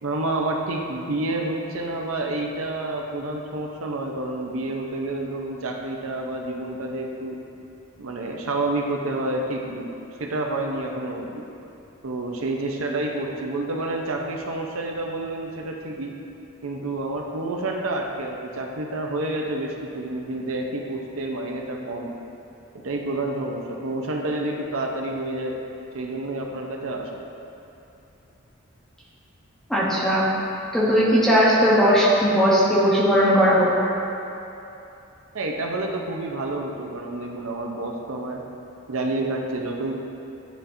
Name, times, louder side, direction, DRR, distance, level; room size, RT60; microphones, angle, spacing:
voice 1, 0.0-7.4 8.0-9.9 10.2-11.5 12.0-16.1 16.6-22.1 22.7-25.6 25.9-27.1 35.3-38.4 38.9-40.0, right 2 dB, 80° right, 1 dB, 0.7 m, -29 dB
voice 2, 29.7-30.3 30.7-33.7, equal, ahead, -8 dB, 0.9 m, -18 dB
10.0 x 4.2 x 2.6 m, 2.9 s
head